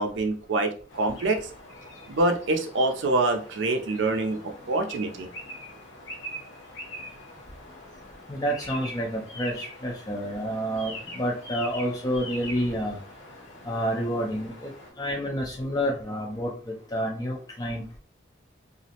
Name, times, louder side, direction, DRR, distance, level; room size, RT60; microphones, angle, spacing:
voice 1, 0.0-1.5 2.1-5.3, right 2 dB, 70° right, 6 dB, 0.4 m, -26 dB
sound 1, 0.9-14.9, equal, 85° left, 0.7 m, -43 dB
voice 2, 8.3-13.0 13.7-14.7 15.0-18.0, equal, 20° left, -2 dB, 0.4 m, -29 dB
2.4 x 2.0 x 2.8 m, 0.40 s
head